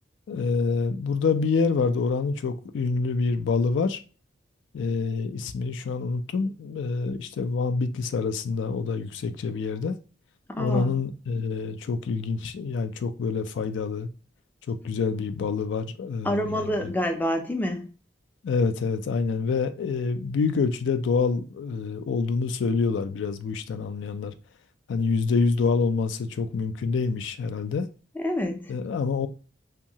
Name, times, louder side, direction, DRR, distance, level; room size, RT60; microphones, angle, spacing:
voice 1, 0.3-4.0 4.7-10.0 10.6-14.1 14.7-16.9 18.4-24.3 24.9-27.9 28.7-29.3, left 4 dB, 85° left, 0.3 m, -26 dB
voice 2, 10.5-10.9 16.2-17.9 28.2-28.7, equal, 10° left, 0.4 m, -27 dB
2.8 x 2.2 x 2.7 m
head